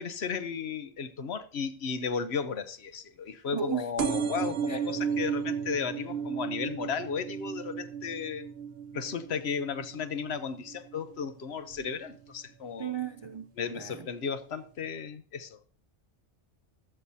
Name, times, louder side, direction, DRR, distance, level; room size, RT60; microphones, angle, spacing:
voice 1, 0.0-8.5 8.9-12.9 13.6-15.6, left 6 dB, 65° left, 1.0 m, -34 dB
voice 2, 3.5-3.8 4.7-4.8 12.8-13.5 13.7-14.0, right 8 dB, 35° right, 0.4 m, -34 dB
sound 1, 4.0-11.2 11.7-12.2 13.0-13.1 13.3-13.4 13.6-13.7, right 7 dB, 65° right, 0.9 m, -34 dB
15.5 x 12.0 x 2.7 m
omnidirectional pair, 1.2 m